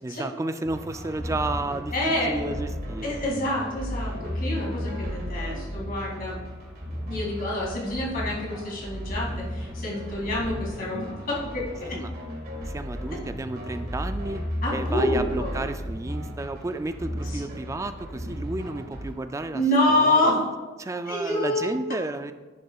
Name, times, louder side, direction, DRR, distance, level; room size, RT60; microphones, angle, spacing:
voice 1, 0.0-3.2 11.9-12.1 12.7-14.4 14.7-19.6 19.9-20.3 20.8-22.3, right 2 dB, 15° right, 9 dB, 0.3 m, -32 dB
sound 1, 0.6-19.1, equal, 50° right, 1.7 m, -34 dB
voice 2, 1.9-2.3 3.0-6.4 7.1-12.0 13.1-13.2 14.6-15.6 17.3-17.4 19.5-20.4 21.1-21.7, left 1 dB, 50° left, -4 dB, 2.5 m, -27 dB
10.5 x 6.5 x 2.4 m, 1.3 s
head